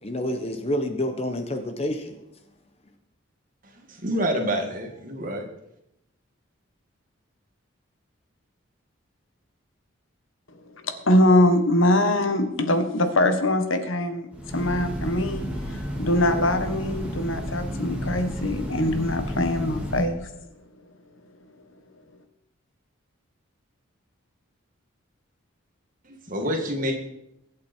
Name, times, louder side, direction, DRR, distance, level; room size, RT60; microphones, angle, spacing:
voice 1, 0.0-2.2, left 1 dB, 30° left, 6 dB, 1.2 m, -28 dB
voice 2, 3.7-5.4 26.0-26.9, equal, 40° right, 2 dB, 2.4 m, -27 dB
voice 3, 10.8-20.3, left 1 dB, 70° left, 8 dB, 1.6 m, -23 dB
Train, 14.3-20.0, equal, 5° right, 2.4 m, -32 dB
22.5 x 8.3 x 4.6 m, 0.82 s
head